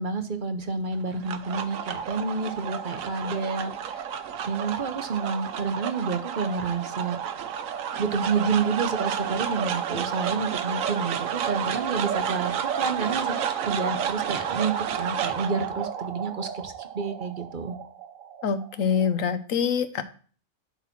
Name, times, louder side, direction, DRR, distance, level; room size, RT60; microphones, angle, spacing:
voice 1, 0.0-4.1 4.5-7.3 8.0-17.8, right 4 dB, 45° right, 8 dB, 1.0 m, -29 dB
sound 1, 0.9-19.3, right 8 dB, 90° right, 1.2 m, -31 dB
voice 2, 18.4-20.0, left 7 dB, 85° left, 12 dB, 1.2 m, -25 dB
10.5 x 4.1 x 5.9 m, 0.43 s
omnidirectional pair, 1.3 m